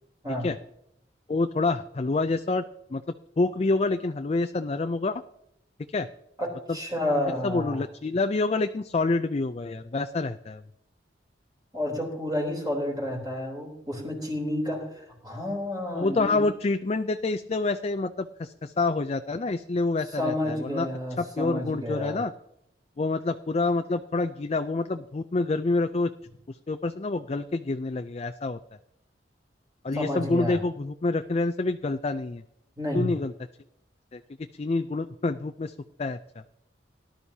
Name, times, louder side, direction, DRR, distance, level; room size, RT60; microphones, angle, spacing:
voice 1, 1.3-2.6 2.9-3.0 3.4-5.2 5.9-6.1 6.7-6.8 7.4-10.6 15.9-20.9 21.2-22.3 23.0-26.1 26.5-28.6 29.8-32.4 32.9-33.3 34.1-34.2 34.6-35.7 36.0-36.2, left 3 dB, 35° left, 9 dB, 0.4 m, -27 dB
voice 2, 6.4-7.8 11.7-16.4 20.1-22.2 29.9-30.6 32.8-33.1, left 1 dB, 20° right, 0 dB, 3.5 m, -30 dB
18.0 x 11.5 x 2.8 m, 0.77 s
head